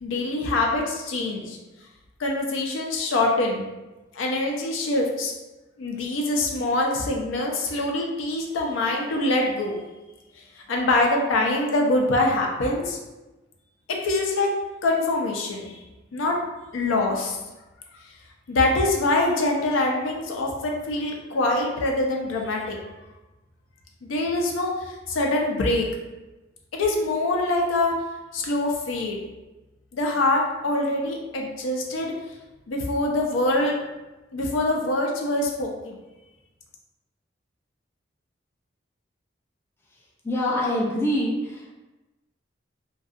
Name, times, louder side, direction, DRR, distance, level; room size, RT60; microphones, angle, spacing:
voice 1, 0.0-1.6 2.2-3.6 4.1-5.3 5.8-9.8 10.7-13.0 13.9-14.5 14.8-15.8 16.1-16.4 16.7-17.4 18.5-22.8 24.0-25.9 26.7-27.9 28.3-29.2 29.9-32.1 32.7-33.8 34.3-35.9, left 2 dB, 85° left, 0 dB, 0.4 m, -24 dB
voice 2, 40.2-41.8, left 1 dB, 10° left, -4 dB, 0.3 m, -25 dB
2.6 x 2.3 x 2.4 m, 1.1 s
head